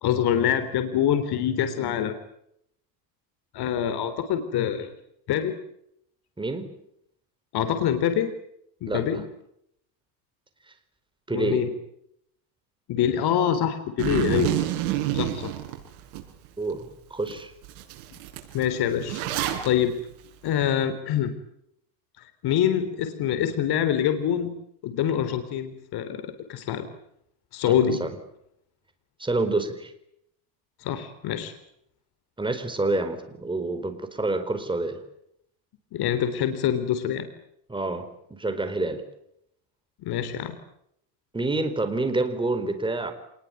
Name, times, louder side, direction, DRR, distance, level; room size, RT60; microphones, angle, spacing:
voice 1, 0.0-2.2 3.5-4.9 5.3-5.6 7.5-8.3 8.8-9.2 11.3-11.7 12.9-14.5 15.1-15.5 18.5-19.2 19.6-20.0 20.4-21.3 22.2-24.5 24.8-26.9 27.5-28.1 30.8-31.5 35.9-37.3 40.0-40.6, left 9 dB, 50° left, 10 dB, 3.5 m, -25 dB
voice 2, 6.4-6.7 8.9-9.1 11.3-11.6 16.6-17.5 27.6-28.1 29.2-29.9 32.4-35.0 37.7-39.0 41.3-43.1, right 2 dB, 10° right, 8 dB, 4.2 m, -28 dB
Zipper (clothing), 14.0-16.2 16.7-16.8 17.3-17.4 17.6-19.7, right 13 dB, 70° right, 6.0 m, -28 dB
27.0 x 20.5 x 9.3 m, 0.75 s
supercardioid pair, 125°, 49 cm